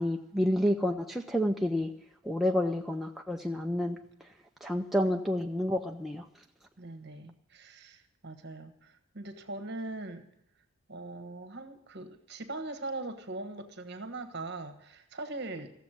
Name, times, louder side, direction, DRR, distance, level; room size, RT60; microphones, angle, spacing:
voice 1, 0.0-1.9 2.2-4.0 4.6-6.3, equal, ahead, 1 dB, 0.5 m, -29 dB
voice 2, 6.8-10.3 10.9-15.8, right 2 dB, 50° right, 8 dB, 1.4 m, -41 dB
15.0 x 7.2 x 9.1 m, 0.82 s
head